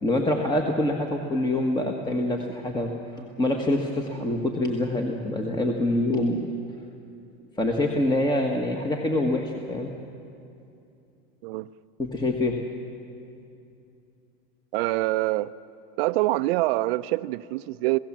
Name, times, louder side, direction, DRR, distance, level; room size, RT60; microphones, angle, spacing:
voice 1, 0.0-2.9 3.2-6.5 7.6-9.9 12.0-12.6, left 1 dB, 15° left, 2 dB, 1.6 m, -25 dB
voice 2, 14.7-15.5 16.0-18.0, right 18 dB, 80° right, 14 dB, 0.7 m, -25 dB
28.0 x 16.5 x 7.5 m, 2.7 s
supercardioid pair, 125°, 30 cm